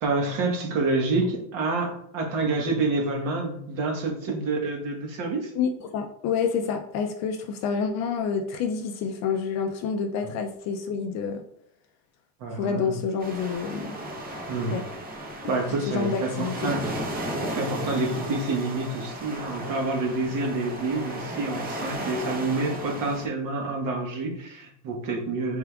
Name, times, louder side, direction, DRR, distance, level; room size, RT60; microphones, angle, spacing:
voice 1, 0.0-5.5 12.4-13.0 14.5-14.8 15.5-16.8 17.5-25.6, right 3 dB, 45° right, 1 dB, 1.2 m, -28 dB
voice 2, 5.5-11.4 12.5-14.0 14.7-14.8 15.4-15.5 15.9-16.7, left 6 dB, 40° left, 5 dB, 0.4 m, -28 dB
sound 1, 13.2-23.3, right 1 dB, 20° right, 0.8 m, -35 dB
4.9 x 3.5 x 2.3 m, 0.73 s
supercardioid pair, 130°, 44 cm